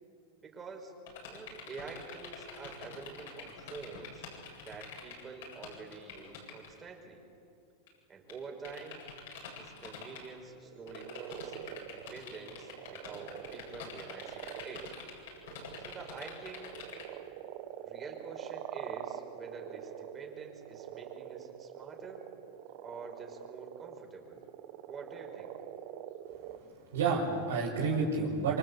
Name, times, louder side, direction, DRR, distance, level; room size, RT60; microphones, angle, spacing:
voice 1, 0.4-0.9 1.3-4.3 4.6-7.2 8.1-9.0 9.6-14.9 15.8-16.7 17.8-22.2 22.8-24.4 24.9-25.5, right 4 dB, 25° right, 2 dB, 5.8 m, -47 dB
sound 1, 1.1-6.8 7.9-8.0 8.3-8.4 8.6-10.3 10.9-17.0, left 7 dB, 70° left, 8.0 m, -46 dB
sound 2, 10.5-26.6, right 11 dB, 60° right, 1.5 m, -45 dB
voice 2, 26.4-28.6, right 4 dB, 75° right, -5 dB, 5.6 m, -31 dB
27.0 x 24.5 x 8.5 m, 2.6 s
hypercardioid pair, 105°, 0 cm